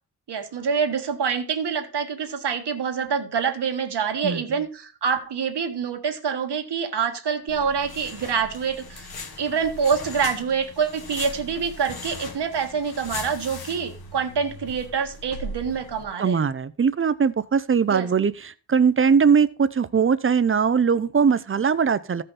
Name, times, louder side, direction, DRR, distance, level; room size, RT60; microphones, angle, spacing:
voice 1, 0.3-9.1 9.4-16.4 17.9-18.1, right 6 dB, 75° right, 6 dB, 1.6 m, -26 dB
voice 2, 4.2-4.6 16.2-22.2, right 6 dB, 30° right, 16 dB, 0.5 m, -21 dB
sound 1, 7.5-16.0, left 2 dB, 60° left, 1.4 m, -39 dB
15.0 x 5.5 x 4.1 m, 0.36 s
wide cardioid pair, 180°, 41 cm